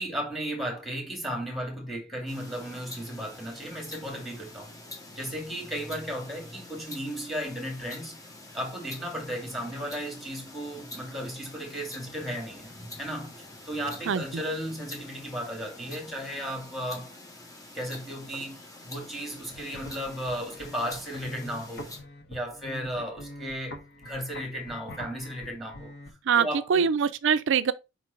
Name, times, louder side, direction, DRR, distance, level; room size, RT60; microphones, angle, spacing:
voice 1, 0.0-4.7 5.2-8.2 8.5-17.1 17.7-21.9 22.3-25.9 26.3-26.9, equal, ahead, 2.6 m, -35 dB
sound 1, 2.3-22.0, left 1 dB, 20° left, 1.5 m, -46 dB
voice 2, 14.1-14.4 26.3-27.7, right 6 dB, 65° right, 0.5 m, -24 dB
sound 2, 19.4-26.1, left 1 dB, 55° left, 1.2 m, -44 dB
5.3 x 4.4 x 4.6 m
head